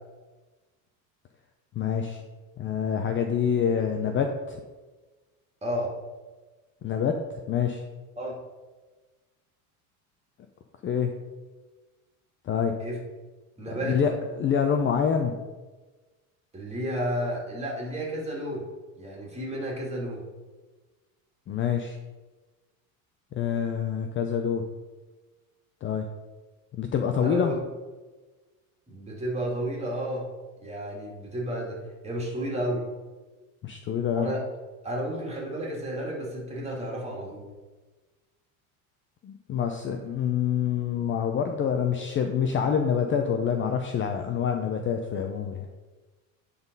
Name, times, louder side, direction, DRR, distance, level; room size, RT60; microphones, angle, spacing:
voice 1, 1.8-2.2 2.6-4.6 6.8-7.2 7.5-7.8 10.8-11.1 12.5-12.7 13.8-15.4 21.5-22.0 23.3-24.6 25.8-26.1 26.8-27.5 33.6-34.3 39.2-45.8, left 7 dB, 30° left, 5 dB, 0.6 m, -26 dB
voice 2, 5.6-5.9 8.2-8.4 12.8-13.0 13.6-14.2 16.5-18.7 19.0-20.2 27.2-27.6 28.9-30.3 30.6-32.8 34.1-34.4 34.8-37.4, right 1 dB, 15° right, -2 dB, 2.5 m, -32 dB
9.5 x 4.1 x 5.3 m, 1.3 s
supercardioid pair, 115°, 43 cm